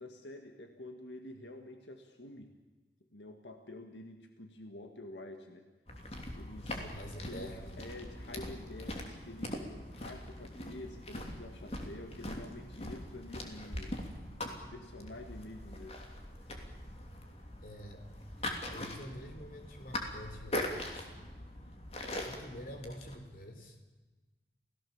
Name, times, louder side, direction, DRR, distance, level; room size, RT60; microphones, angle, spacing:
voice 1, 0.0-2.5 3.1-5.6 6.4-6.8 7.3-9.6 9.9-14.0 14.4-16.0 16.4-16.7, left 1 dB, 85° left, 5 dB, 1.9 m, -48 dB
sound 1, 5.9-23.2, left 1 dB, 35° left, 3.1 m, -42 dB
voice 2, 6.6-7.9 17.6-18.0 18.4-21.3 22.2-23.8, equal, 50° left, 6 dB, 3.7 m, -47 dB
29.5 x 17.0 x 7.2 m, 1.2 s
head